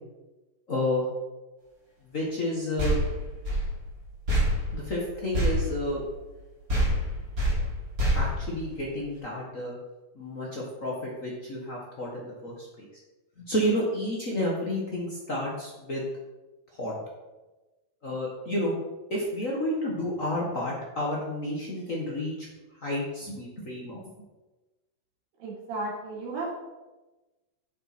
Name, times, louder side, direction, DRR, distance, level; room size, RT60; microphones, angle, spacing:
voice 1, 0.7-1.1 2.1-3.0 4.7-6.0 8.1-9.7 10.1-12.9 13.4-16.0 16.7-16.9 18.0-18.7 19.1-22.5 22.8-24.0, left 1 dB, 65° left, -3 dB, 0.8 m, -30 dB
sound 1, 2.8-6.4 6.7-9.2, equal, 25° right, 3.6 m, -27 dB
voice 2, 25.4-26.6, right 2 dB, 75° right, -4 dB, 4.2 m, -34 dB
10.0 x 7.5 x 4.4 m, 1.1 s
omnidirectional pair, 4.1 m